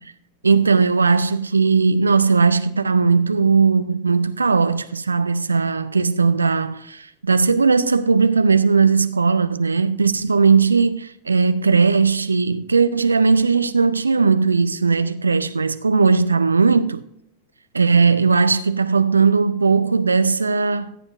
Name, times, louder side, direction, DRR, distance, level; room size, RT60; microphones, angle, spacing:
voice 1, 0.4-17.0 17.7-21.0, right 4 dB, 75° right, 0.4 m, -18 dB
14.5 x 8.8 x 2.4 m
figure-of-eight pair, 90°, 0 cm